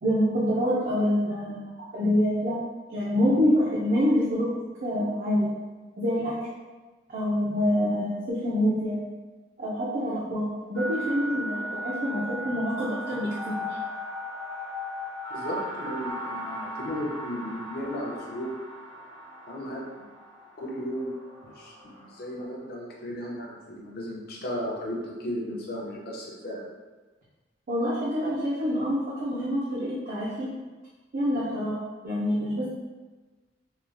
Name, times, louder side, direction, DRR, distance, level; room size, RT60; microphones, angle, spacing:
voice 1, 0.0-2.6 2.9-4.5 4.8-5.5 6.0-6.4 7.1-9.0 9.6-13.8 27.7-30.5 31.1-31.8 32.0-32.7, equal, 45° right, -7 dB, 0.5 m, -26 dB
sound 1, 10.8-22.4, equal, 85° left, 0.9 m, -37 dB
voice 2, 15.3-18.5 19.5-19.9 20.6-21.1 21.4-26.6, equal, 55° left, -3 dB, 0.6 m, -35 dB
3.0 x 2.3 x 2.5 m, 1.3 s
head